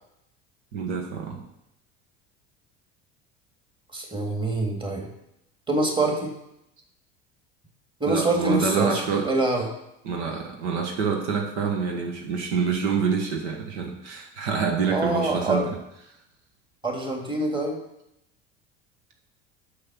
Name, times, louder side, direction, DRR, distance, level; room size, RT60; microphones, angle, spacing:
voice 1, 0.7-1.5 8.1-9.4 10.0-15.7, right 5 dB, 75° right, 2 dB, 1.4 m, -27 dB
voice 2, 3.9-5.1 5.7-6.3 8.0-9.7 14.9-15.7 16.8-17.8, right 2 dB, 15° right, 1 dB, 2.1 m, -25 dB
6.4 x 5.8 x 6.0 m, 0.83 s
hypercardioid pair, 80°, 35 cm